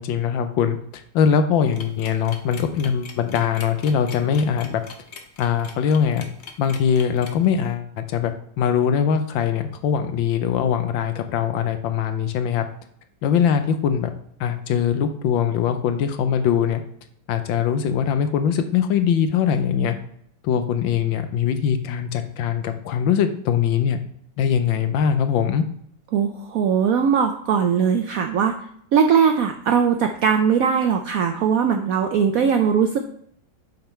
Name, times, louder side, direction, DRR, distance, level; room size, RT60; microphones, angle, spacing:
voice 1, 0.0-4.8 5.4-6.2 6.6-12.6 13.2-14.1 14.4-16.8 17.3-19.9 20.4-24.0 24.4-25.6, left 7 dB, 85° left, 8 dB, 1.4 m, -22 dB
sound 1, 1.7-7.5, left 5 dB, 55° left, 0.8 m, -41 dB
voice 2, 26.1-28.5 28.9-33.0, right 7 dB, 80° right, 5 dB, 0.7 m, -20 dB
7.9 x 3.6 x 4.3 m, 0.67 s
omnidirectional pair, 2.1 m